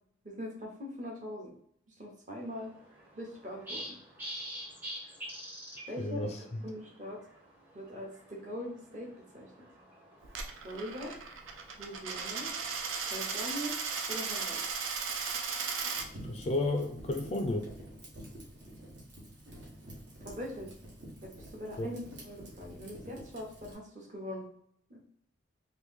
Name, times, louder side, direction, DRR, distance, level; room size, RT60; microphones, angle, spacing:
voice 1, 0.2-1.5 1.9-2.7 3.1-3.8 5.9-7.2 7.7-9.7 10.6-11.1 11.8-12.5 13.0-13.7 14.1-14.6 20.2-20.7 21.2-24.4 24.9-25.0, equal, 40° right, 0 dB, 0.9 m, -42 dB
sound 1, 2.4-12.9, equal, 10° right, 0.7 m, -48 dB
voice 2, 6.0-6.4 16.2-17.7 21.8-21.9, left 2 dB, 35° left, 4 dB, 0.3 m, -32 dB
Coin (dropping), 10.2-16.1, right 5 dB, 85° right, 0.5 m, -36 dB
Fire, 15.9-23.7, right 1 dB, 65° right, 1.1 m, -49 dB
3.1 x 2.6 x 3.6 m, 0.68 s
head